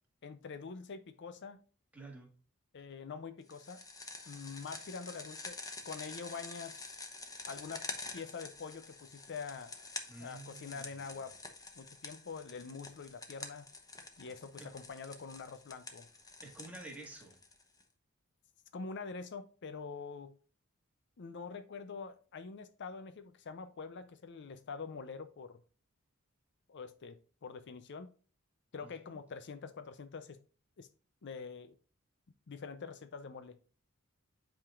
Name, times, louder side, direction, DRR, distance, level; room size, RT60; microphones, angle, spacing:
voice 1, 0.2-1.6 2.7-3.8 4.3-5.6 5.8-6.9 7.5-7.9 8.1-9.9 10.2-11.3 11.8-13.7 14.2-16.1 18.7-20.3 21.2-25.6 26.7-28.1 28.7-30.4 30.8-30.9 31.2-31.7 32.5-33.6, left 5 dB, 55° left, 0.5 m, -45 dB
voice 2, 1.9-2.3 10.1-11.2 16.4-17.4 28.8-29.2, right 2 dB, 5° right, 1.8 m, -50 dB
sound 1, 3.5-17.8, left 3 dB, 15° left, 0.9 m, -48 dB
8.7 x 5.0 x 2.5 m
head